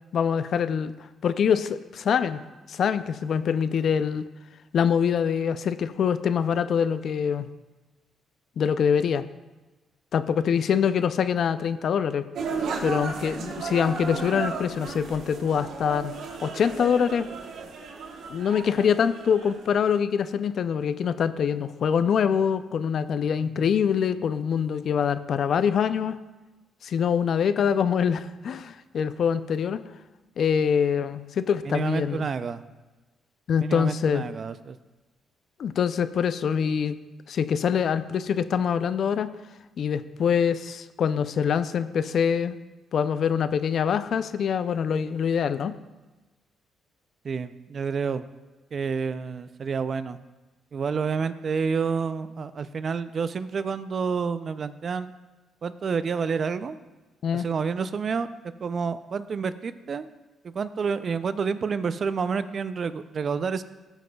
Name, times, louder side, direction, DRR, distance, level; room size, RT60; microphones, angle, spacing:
voice 1, 0.1-0.9 1.2-2.4 2.7-4.3 4.7-7.5 8.6-9.2 10.1-12.2 12.8-16.1 16.4-17.3 18.3-26.2 26.8-29.8 30.4-32.3 33.5-34.2 35.6-37.0 37.3-39.3 39.8-42.6 42.9-45.7 57.2-57.5, left 7 dB, 60° left, 13 dB, 0.4 m, -24 dB
sound 1, 12.3-19.8, right 4 dB, 70° right, 1.1 m, -34 dB
voice 2, 31.7-32.6 33.6-34.8 47.2-48.3 48.7-50.2 50.7-55.1 55.6-56.8 57.3-58.3 58.6-60.1 60.4-63.6, right 5 dB, 45° right, 13 dB, 0.4 m, -29 dB
13.5 x 8.1 x 2.3 m, 1.2 s
cardioid pair, 90°, 0 cm